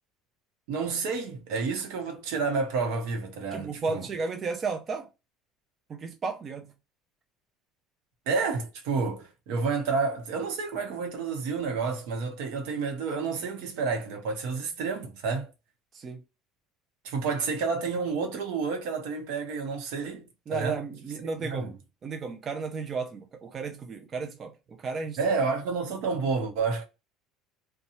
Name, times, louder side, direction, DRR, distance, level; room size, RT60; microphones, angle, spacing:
voice 1, 0.7-4.1 8.3-15.5 17.0-20.8 21.4-21.8 25.2-26.8, right 4 dB, 80° right, 0.9 m, -30 dB
voice 2, 3.5-5.1 5.9-6.7 15.9-16.2 20.5-21.7 22.0-25.2, right 4 dB, 30° right, 0.5 m, -33 dB
2.8 x 2.2 x 2.7 m
cardioid pair, 125°, 0 cm